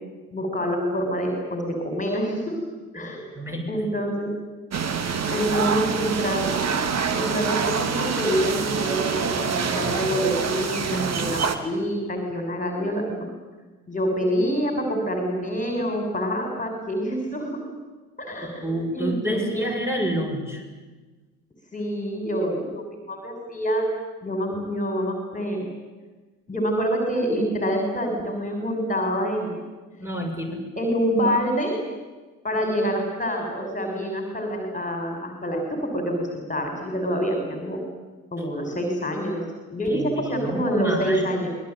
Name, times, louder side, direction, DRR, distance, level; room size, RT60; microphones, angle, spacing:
voice 1, 0.3-2.6 2.9-3.3 3.7-4.3 5.3-6.5 7.1-13.3 13.9-17.6 18.2-18.7 18.9-19.6 21.7-23.9 24.2-25.7 26.5-29.6 30.8-31.8 32.4-37.8 38.3-41.5, equal, 15° left, 3 dB, 6.0 m, -26 dB
voice 2, 3.3-3.9 18.4-20.6 30.0-30.6 38.6-38.8 39.9-41.4, equal, 5° right, 1 dB, 7.5 m, -29 dB
sound 1, 4.7-11.6, right 6 dB, 30° right, 2.5 m, -26 dB
26.0 x 20.5 x 9.3 m, 1.3 s
figure-of-eight pair, 65°, 48 cm